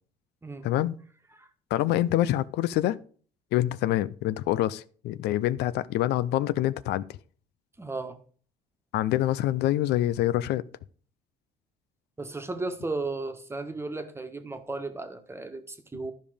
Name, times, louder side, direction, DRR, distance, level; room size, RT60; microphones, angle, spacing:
voice 1, 0.6-1.0 1.7-3.0 3.5-7.0 8.9-10.6, left 14 dB, 80° left, 0.5 m, -26 dB
voice 2, 7.8-8.2 12.2-16.1, right 3 dB, 15° right, 1.4 m, -35 dB
12.0 x 5.3 x 5.0 m
cardioid pair, 110°, 17 cm